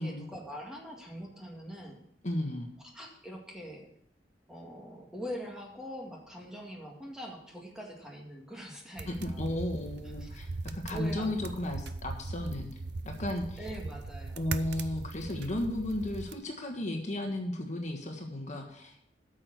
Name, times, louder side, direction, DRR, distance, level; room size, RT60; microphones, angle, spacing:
voice 1, 0.0-2.1 2.8-3.9 4.5-9.5 10.2-10.4 10.9-11.6 13.6-14.5, equal, 5° right, -1 dB, 2.0 m, -43 dB
voice 2, 2.2-2.7 9.1-12.7 13.0-13.6 14.4-19.1, left 1 dB, 40° left, 2 dB, 1.5 m, -34 dB
sound 1, 9.0-16.4, right 3 dB, 65° right, 0.6 m, -40 dB
8.8 x 6.6 x 7.9 m, 0.70 s
head